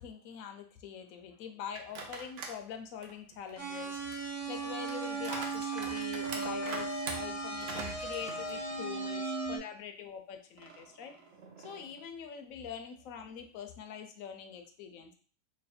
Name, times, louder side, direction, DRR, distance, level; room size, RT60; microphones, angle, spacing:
voice 1, 0.0-11.1 11.6-15.1, left 8 dB, 75° left, 6 dB, 1.0 m, -44 dB
sound 1, 1.7-2.6 3.0-9.1 9.5-9.6 10.6-12.0, right 4 dB, 65° right, 0.9 m, -45 dB
sound 2, 3.6-9.6, right 3 dB, 15° left, 0.7 m, -36 dB
3.1 x 2.3 x 4.1 m, 0.43 s
omnidirectional pair, 1.5 m